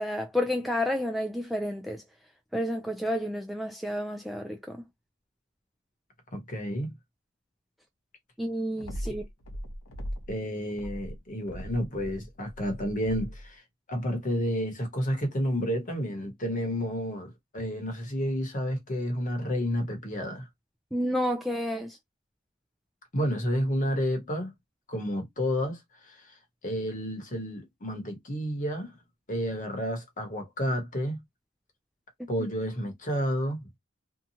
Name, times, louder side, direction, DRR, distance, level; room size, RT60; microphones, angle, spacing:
voice 1, 0.0-2.0 2.5-4.8 8.4-9.2 20.9-22.0, equal, ahead, 0.3 m, -30 dB
voice 2, 6.3-6.9 10.3-13.6 13.9-20.5 23.1-24.5 24.9-26.3 26.6-29.0 29.3-31.2 32.3-33.6, equal, 40° left, 1.0 m, -30 dB
sound 1, 8.8-10.4 10.7-13.5, equal, 70° left, 0.8 m, -39 dB
2.7 x 2.3 x 2.7 m
head